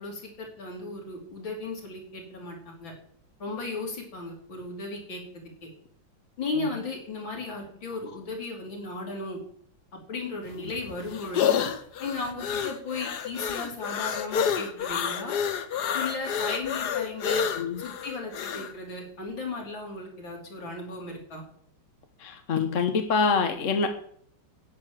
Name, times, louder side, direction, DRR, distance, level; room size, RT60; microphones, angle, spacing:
voice 1, 0.0-2.9 3.4-5.7 6.4-9.4 10.1-11.6 12.0-15.3 15.9-17.4 17.8-21.4, left 3 dB, 80° left, -1 dB, 4.1 m, -36 dB
sound 1, 10.5-18.7, left 8 dB, 60° left, 1.5 m, -29 dB
voice 2, 22.2-23.9, left 5 dB, 45° left, 6 dB, 1.3 m, -25 dB
10.5 x 8.9 x 7.4 m, 0.63 s
omnidirectional pair, 2.1 m